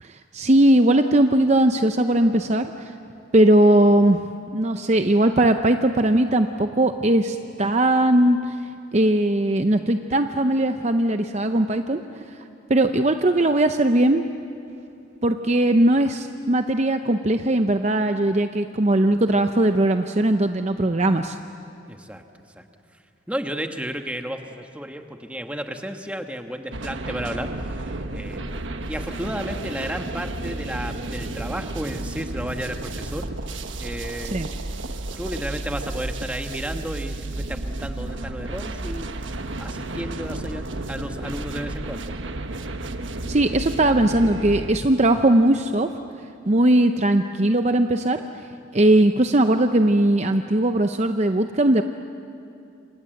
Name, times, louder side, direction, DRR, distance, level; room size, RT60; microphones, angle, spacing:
voice 1, 0.0-2.9 3.3-4.2 4.5-8.5 8.9-12.0 12.3-12.4 12.7-14.3 15.2-21.4 34.3-34.5 43.3-45.9 46.5-48.2 48.7-51.8, right 1 dB, 35° right, 7 dB, 0.7 m, -19 dB
voice 2, 21.9-22.2 22.6-22.7 22.9-23.0 23.3-28.4 28.9-33.3 33.8-34.5 35.2-39.1 39.6-42.2, equal, 5° right, 5 dB, 1.3 m, -33 dB
sound 1, 26.7-44.8, right 2 dB, 70° right, 1.3 m, -32 dB
28.5 x 26.5 x 7.8 m, 2.6 s
head